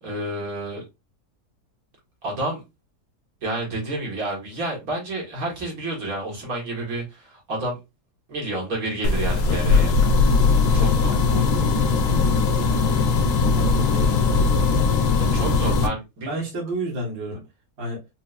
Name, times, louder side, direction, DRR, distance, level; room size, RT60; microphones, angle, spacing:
voice 1, 0.0-0.8 2.2-2.6 3.4-7.8 8.3-10.0 10.7-11.1 15.2-16.4, right 1 dB, 65° right, -2 dB, 1.8 m, -29 dB
sound 1, 9.0-15.9, left 4 dB, 85° left, 1.2 m, -19 dB
voice 2, 13.5-14.4 16.3-17.4 17.8-18.0, equal, 50° right, -4 dB, 1.4 m, -31 dB
4.4 x 2.4 x 2.4 m, 0.23 s
omnidirectional pair, 1.6 m